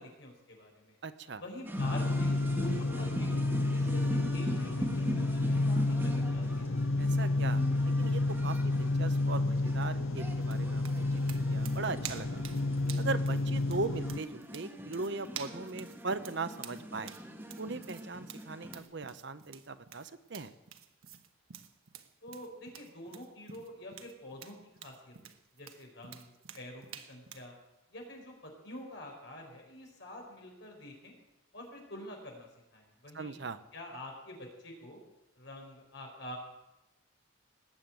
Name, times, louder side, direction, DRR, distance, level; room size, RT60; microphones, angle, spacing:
voice 1, 0.0-1.0 1.4-3.4 3.7-6.6 22.2-27.5 27.9-31.1 31.5-33.4 33.7-35.0 35.4-36.4, left 1 dB, 55° left, 1 dB, 5.0 m, -47 dB
voice 2, 1.0-1.4 7.0-12.4 13.0-17.2 17.6-20.5 33.1-33.6, right 3 dB, 55° right, 12 dB, 0.8 m, -39 dB
sound 1, 1.6-18.8, equal, 10° right, 1.7 m, -42 dB
sound 2, 1.8-14.2, left 2 dB, 80° left, 0.7 m, -30 dB
sound 3, 10.4-27.5, right 9 dB, 80° right, 1.2 m, -49 dB
19.5 x 8.0 x 9.0 m, 0.93 s
head